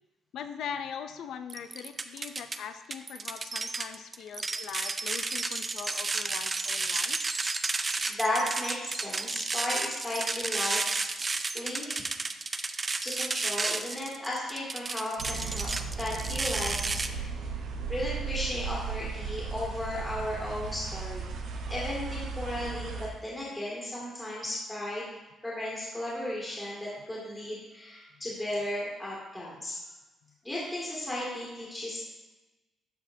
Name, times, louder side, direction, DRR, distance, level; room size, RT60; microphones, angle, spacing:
voice 1, 0.3-7.2, left 7 dB, 75° left, 9 dB, 0.4 m, -41 dB
sound 1, 1.5-2.6 2.9-17.1, right 3 dB, 30° right, 0.4 m, -32 dB
voice 2, 8.1-10.8 11.5-12.0 13.0-15.7 16.0-17.3 17.9-21.3 21.7-25.1 25.4-29.8 30.4-32.0, left 1 dB, 15° left, -7 dB, 2.1 m, -35 dB
sound 2, 15.2-23.1, right 5 dB, 80° right, 0.9 m, -36 dB
12.5 x 4.3 x 2.6 m, 1.1 s
cardioid pair, 90°, 0 cm